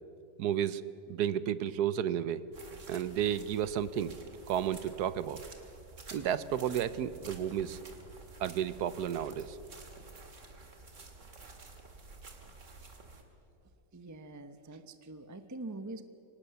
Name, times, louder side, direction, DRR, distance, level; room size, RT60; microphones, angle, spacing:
voice 1, 0.4-0.8 1.1-2.4 2.9-4.2 4.5-5.4 6.1-7.8 8.4-9.6, right 10 dB, 75° right, 16 dB, 1.2 m, -32 dB
sound 1, 2.5-13.2, right 3 dB, 45° right, 2.3 m, -51 dB
voice 2, 13.9-16.0, right 2 dB, 25° right, 10 dB, 0.3 m, -44 dB
24.5 x 18.5 x 6.9 m, 2.9 s
omnidirectional pair, 1.8 m